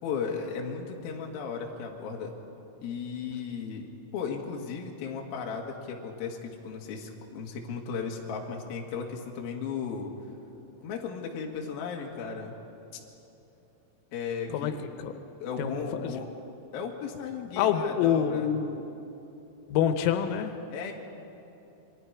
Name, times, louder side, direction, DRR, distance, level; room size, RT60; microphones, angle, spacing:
voice 1, 0.0-2.3 2.8-10.1 10.8-12.5 14.1-14.8 15.4-16.3 16.7-18.5 20.7-20.9, left 6 dB, 60° left, 0 dB, 3.1 m, -35 dB
voice 2, 17.6-18.8 19.7-20.5, left 9 dB, 90° left, 7 dB, 3.6 m, -26 dB
27.5 x 22.0 x 4.7 m, 2.9 s
omnidirectional pair, 5.8 m